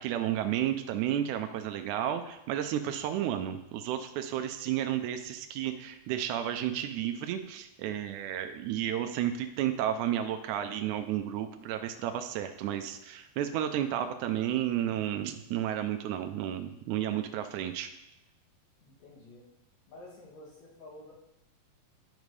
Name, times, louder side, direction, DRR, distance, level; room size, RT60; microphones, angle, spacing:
voice 1, 0.0-17.9, right 11 dB, 85° right, 7 dB, 1.7 m, -32 dB
voice 2, 18.8-19.4 19.9-21.1, left 2 dB, 60° left, -6 dB, 2.8 m, -50 dB
11.5 x 5.2 x 3.2 m, 0.86 s
omnidirectional pair, 4.0 m